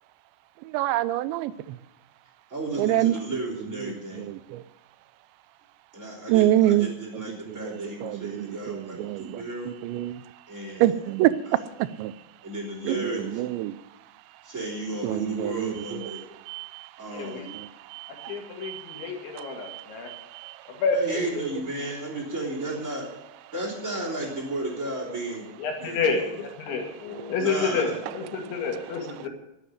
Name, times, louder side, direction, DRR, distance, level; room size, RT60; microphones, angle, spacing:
voice 1, 0.6-1.8 2.8-3.1 3.8-4.6 6.3-10.2 10.8-11.4 11.8-12.1 12.8-13.8 15.0-16.9 17.5-19.1 19.4-20.7, right 14 dB, 85° right, 16 dB, 2.9 m, -27 dB
voice 2, 2.5-4.3 5.9-9.8 10.5-11.0 11.5-11.6 12.4-13.4 14.4-16.2 17.0-17.5 20.9-23.1 23.5-25.5 25.8-26.1 27.4-28.0, right 2 dB, 20° right, -4 dB, 3.4 m, -33 dB
voice 3, 17.1-17.5 18.3-20.1 20.7-21.2 25.6-29.3, left 4 dB, 90° left, 2 dB, 4.6 m, -29 dB
12.5 x 8.3 x 9.8 m, 0.87 s
omnidirectional pair, 5.1 m